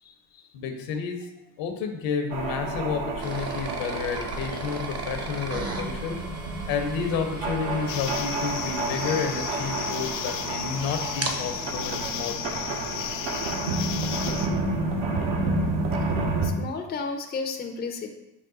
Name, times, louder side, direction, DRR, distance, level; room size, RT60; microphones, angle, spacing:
voice 1, 0.5-1.3 1.6-6.2 6.7-12.6, left 6 dB, 65° left, 5 dB, 0.8 m, -30 dB
sound 1, 2.3-16.5, right 2 dB, 65° right, 0.9 m, -30 dB
sound 2, 3.2-14.0, right 3 dB, 30° right, 0.8 m, -38 dB
sound 3, 7.9-14.5, left 9 dB, 85° left, 0.5 m, -34 dB
voice 2, 16.4-18.1, left 4 dB, 20° left, 4 dB, 0.5 m, -32 dB
5.8 x 2.2 x 3.7 m, 0.92 s
hypercardioid pair, 70°, 48 cm